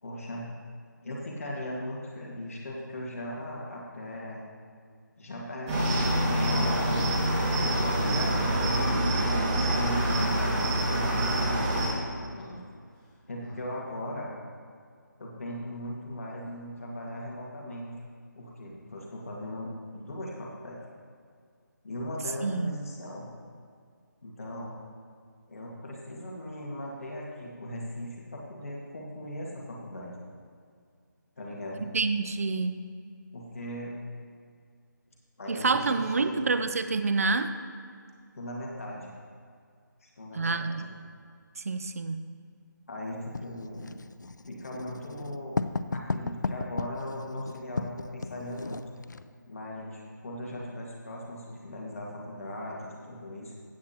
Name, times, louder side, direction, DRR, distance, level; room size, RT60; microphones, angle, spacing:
voice 1, 0.0-0.5 1.0-4.4 5.2-5.9 6.2-7.1 7.9-9.0 9.2-12.6 13.3-14.3 15.2-17.9 18.4-20.8 21.8-23.3 24.2-24.8 25.5-30.2 31.4-31.9 33.3-34.0 35.4-36.5 38.3-39.1 40.0-40.9 42.9-43.9 44.5-45.6 45.9-48.8 49.5-53.5, left 1 dB, 45° left, -3 dB, 1.8 m, -38 dB
Cricket, 5.7-11.9, right 1 dB, 15° right, 1.8 m, -26 dB
sound 1, 8.5-9.9 11.7-12.6 12.9-13.0 13.4-13.6, left 1 dB, 10° left, 0.8 m, -40 dB
voice 2, 22.4-22.7 31.9-32.8 35.5-37.5 40.3-40.9 41.6-42.2, right 4 dB, 45° right, 9 dB, 0.5 m, -27 dB
Writing, 43.3-49.3, left 4 dB, 65° left, 0.5 m, -35 dB
15.5 x 8.3 x 2.9 m, 2.1 s
figure-of-eight pair, 165°, 11 cm